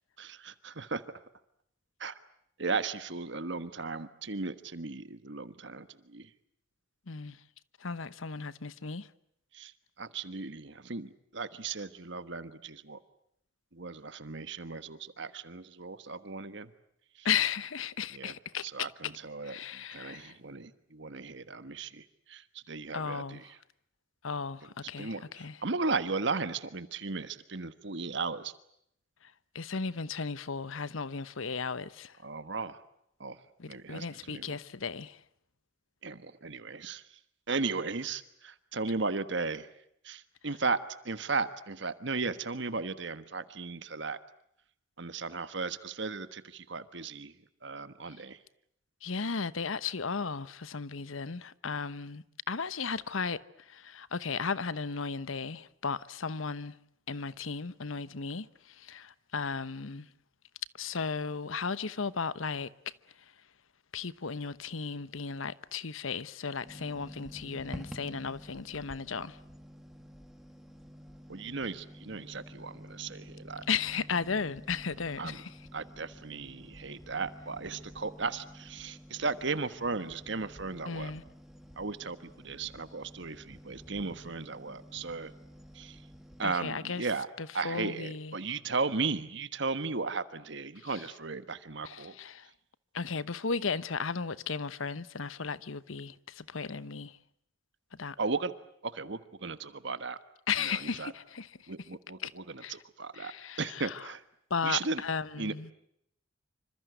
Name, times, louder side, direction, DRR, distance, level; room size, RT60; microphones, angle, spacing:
voice 1, 0.2-1.0 2.0-2.2 2.6-6.3 9.5-13.0 13.7-16.7 17.1-17.3 18.1-18.3 18.6-23.6 25.0-28.5 32.2-32.8 33.2-33.4 33.7-34.6 36.0-37.2 37.5-39.7 40.0-40.8 41.0-44.2 45.0-47.4 47.6-48.4 71.3-73.6 75.2-75.4 75.7-81.1 81.8-85.3 85.7-86.0 86.4-87.3 87.5-92.1 98.2-98.5 98.8-100.2 100.6-101.1 101.7-103.3 103.6-104.2 104.6-105.0 105.4-105.5, right 4 dB, 60° right, 1.4 m, -36 dB
voice 2, 7.1-7.4 7.8-9.1 17.2-18.9 19.4-20.4 22.9-23.4 24.2-25.6 29.5-32.2 33.6-35.2 49.0-56.7 57.1-60.1 60.8-62.7 63.9-69.4 73.7-75.5 80.9-81.2 86.4-87.0 87.4-88.3 91.8-92.5 92.9-97.2 97.9-98.2 100.5-101.5 102.2-102.3 102.6-102.7 103.1-104.0 104.5-105.7, left 5 dB, 80° left, 1.0 m, -35 dB
sound 1, 66.6-86.5, equal, ahead, 2.2 m, -50 dB
27.0 x 25.5 x 8.0 m
head